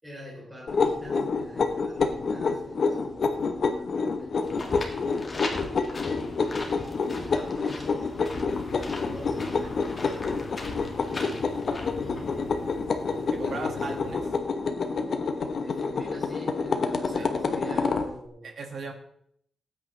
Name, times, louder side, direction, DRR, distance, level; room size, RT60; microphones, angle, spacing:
voice 1, 0.0-4.8 5.1-8.1 9.1-10.4 11.7-12.9 13.4-13.9 15.4-18.5, equal, 10° right, -4 dB, 3.6 m, -47 dB
sound 1, 0.7-18.1, left 4 dB, 50° left, 1.1 m, -28 dB
sound 2, 4.4-12.7, left 2 dB, 30° left, 1.9 m, -39 dB
sound 3, 8.5-14.4, left 5 dB, 80° left, 1.5 m, -45 dB
voice 2, 12.1-12.5 13.3-14.2 17.2-17.3 18.4-18.9, right 4 dB, 60° right, 4 dB, 2.0 m, -38 dB
18.5 x 9.0 x 3.3 m, 0.68 s
wide cardioid pair, 145°, 0 cm